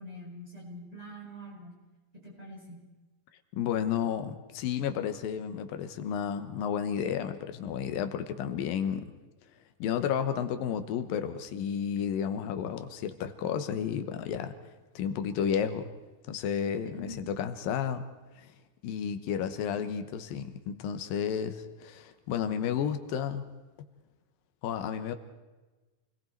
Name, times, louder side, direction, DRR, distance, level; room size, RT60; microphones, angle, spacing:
voice 1, 0.0-1.8 2.2-2.8 16.8-17.3, equal, 10° right, -5 dB, 7.6 m, -44 dB
voice 2, 3.5-9.1 9.8-14.6 15.0-15.9 16.3-18.1 18.4-18.5 18.8-23.5 24.6-25.2, left 8 dB, 85° left, 8 dB, 2.8 m, -32 dB
28.5 x 20.5 x 4.6 m, 1.2 s
omnidirectional pair, 4.0 m